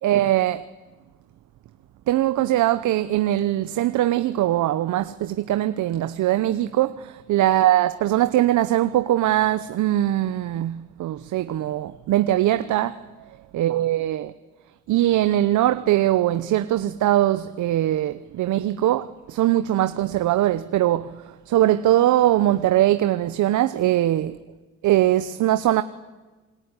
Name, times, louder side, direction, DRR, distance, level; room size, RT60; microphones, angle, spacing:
voice 1, 0.0-0.7 2.1-13.0 13.5-14.3 14.9-21.2 21.5-24.3 24.8-25.8, right 13 dB, 80° right, 1.0 m, -21 dB
26.5 x 22.5 x 9.8 m
cardioid pair, 90°, 30 cm